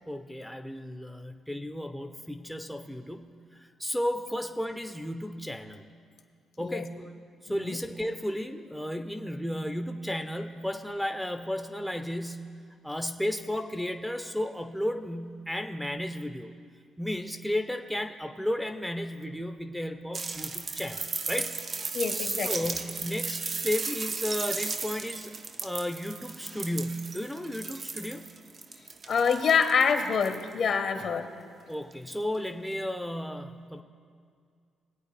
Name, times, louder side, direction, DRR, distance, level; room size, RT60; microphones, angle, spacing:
voice 1, 0.1-5.8 6.6-7.1 7.4-12.5 12.8-16.5 17.0-21.5 22.2-25.3 25.6-28.3 31.7-33.8, left 1 dB, ahead, 5 dB, 0.6 m, -33 dB
sound 1, 20.1-30.5 31.9-32.0, right 4 dB, 45° right, 0.7 m, -35 dB
voice 2, 21.9-22.7 29.1-31.3, left 6 dB, 60° left, 6 dB, 1.2 m, -26 dB
21.5 x 8.4 x 3.3 m, 2.2 s
cardioid pair, 90°, 0 cm